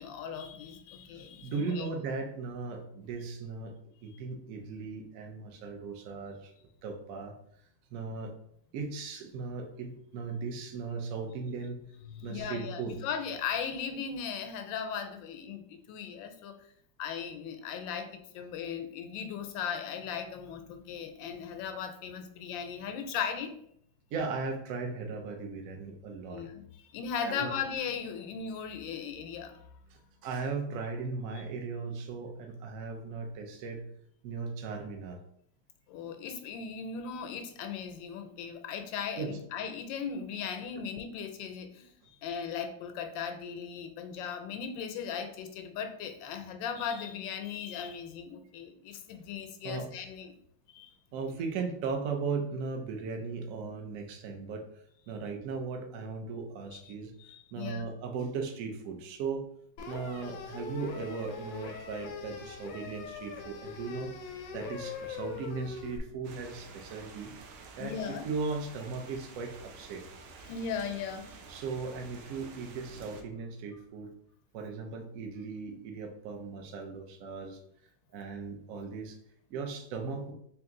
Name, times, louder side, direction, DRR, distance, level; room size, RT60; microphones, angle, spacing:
voice 1, 0.0-1.9 12.1-16.5 17.0-18.1 18.3-23.5 26.3-29.6 31.3-31.4 35.9-50.3 50.7-50.9 56.7-56.9 57.2-57.9 67.8-68.2 70.5-71.3, left 7 dB, 90° left, 7 dB, 1.3 m, -38 dB
voice 2, 1.4-3.7 4.0-6.5 6.8-7.3 7.9-8.3 8.7-11.8 12.2-12.9 24.1-26.5 27.2-27.5 29.9-33.8 34.2-35.2 39.2-39.4 49.6-49.9 51.1-54.6 55.1-57.1 57.5-59.5 59.9-67.3 67.8-68.0 68.2-70.0 71.5-74.1 74.5-77.6 78.1-79.2 79.5-80.3, right 4 dB, 65° right, 3 dB, 0.8 m, -37 dB
sound 1, 59.8-66.0, left 5 dB, 70° left, 0.8 m, -42 dB
sound 2, 66.2-73.2, right 4 dB, 80° right, 1.3 m, -50 dB
3.4 x 2.9 x 3.6 m, 0.70 s
omnidirectional pair, 2.0 m